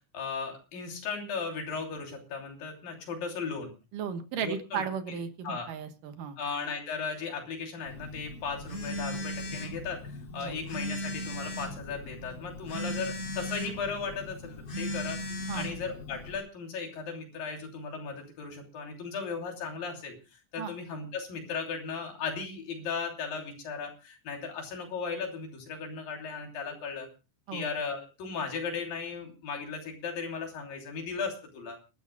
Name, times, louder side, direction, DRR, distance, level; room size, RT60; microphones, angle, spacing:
voice 1, 0.1-3.7 4.4-5.2 5.4-5.7 6.4-27.1 27.5-31.8, left 5 dB, 80° left, 2 dB, 4.8 m, -36 dB
voice 2, 3.9-6.4 10.4-10.6 15.5-15.7 20.6-20.7 27.5-27.7, right 7 dB, 75° right, 8 dB, 2.8 m, -35 dB
Telephone, 7.9-16.4, left 1 dB, 35° left, 3.0 m, -38 dB
30.0 x 12.0 x 2.3 m, 0.30 s
omnidirectional pair, 4.0 m